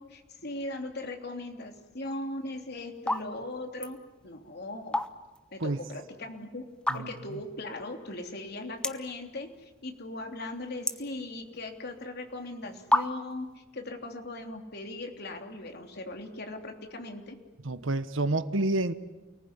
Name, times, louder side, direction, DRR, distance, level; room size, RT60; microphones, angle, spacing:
voice 1, 0.0-4.0 4.2-5.0 5.5-6.7 6.9-17.4, left 2 dB, 55° left, 4 dB, 3.3 m, -39 dB
sound 1, 2.2-2.5 3.0-3.3 3.6-3.9 4.7-5.4 5.8-5.9 6.7-7.3 7.9-8.0 8.1-8.2 8.8-9.2 9.5-10.0 10.3-11.7 12.4-12.5 12.9-13.4, left 1 dB, 5° left, 1.0 m, -29 dB
voice 2, 17.6-18.9, right 2 dB, 85° right, 12 dB, 1.3 m, -28 dB
29.0 x 19.5 x 9.9 m, 1.1 s
head